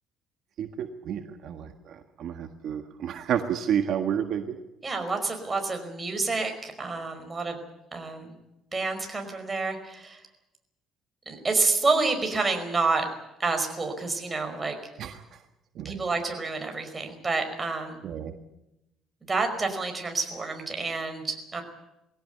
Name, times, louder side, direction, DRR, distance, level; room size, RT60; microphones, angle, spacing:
voice 1, 0.6-4.6 15.0-15.4 15.7-16.1 18.0-18.3, right 8 dB, 60° right, 6 dB, 1.6 m, -31 dB
voice 2, 4.8-7.6 7.9-8.4 8.7-10.2 11.3-13.1 13.4-14.8 15.8-18.0 19.3-21.6, right 3 dB, 20° right, 4 dB, 5.2 m, -28 dB
21.5 x 17.0 x 9.4 m, 0.90 s
cardioid pair, 130°, 0 cm